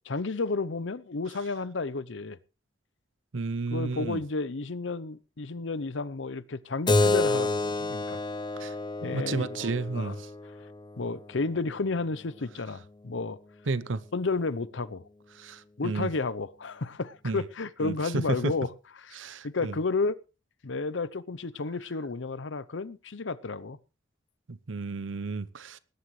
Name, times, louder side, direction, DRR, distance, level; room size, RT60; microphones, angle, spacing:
voice 1, 0.1-2.4 3.7-8.2 9.0-9.7 9.9-10.2 11.0-13.4 14.1-15.0 15.8-18.7 19.0-19.2 19.4-20.2 20.6-23.8, left 3 dB, 75° left, 0.7 m, -32 dB
voice 2, 3.3-4.2 8.6-8.7 9.0-10.2 13.7-14.0 15.4-16.1 17.2-17.4 17.8-18.5 19.1-19.8 24.5-25.8, right 3 dB, 90° right, 0.7 m, -32 dB
Keyboard (musical), 6.9-12.0, left 2 dB, 25° left, 0.8 m, -29 dB
20.0 x 11.5 x 3.2 m
head